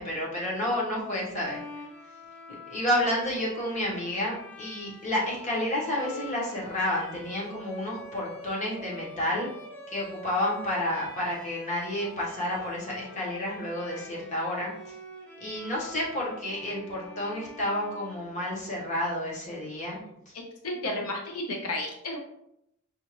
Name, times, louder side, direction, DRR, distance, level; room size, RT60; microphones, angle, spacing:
voice 1, 0.0-1.6 2.7-9.5 9.9-14.9 15.4-20.0 20.3-20.4, left 1 dB, 35° left, -5 dB, 1.3 m, -30 dB
Bowed string instrument, 1.4-18.8, equal, 5° left, 0.6 m, -46 dB
voice 2, 20.6-22.2, left 1 dB, 90° left, 1 dB, 0.6 m, -32 dB
5.4 x 2.5 x 3.0 m, 0.79 s
head